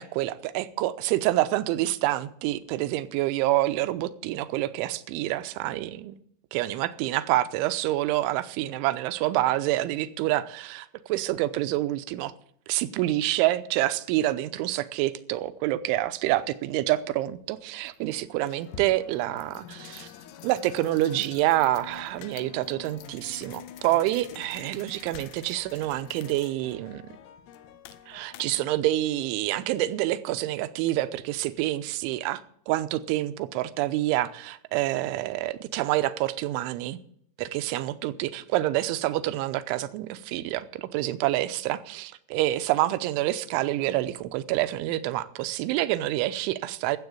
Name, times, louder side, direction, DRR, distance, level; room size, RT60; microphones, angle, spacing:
voice 1, 0.0-6.2 6.5-12.3 12.7-20.1 20.4-27.1 28.1-37.0 37.4-47.0, right 15 dB, 85° right, 3.1 m, -27 dB
sound 1, 17.0-17.2 17.8-28.7, left 9 dB, 75° left, 2.8 m, -46 dB
13.5 x 8.0 x 8.4 m
omnidirectional pair, 5.4 m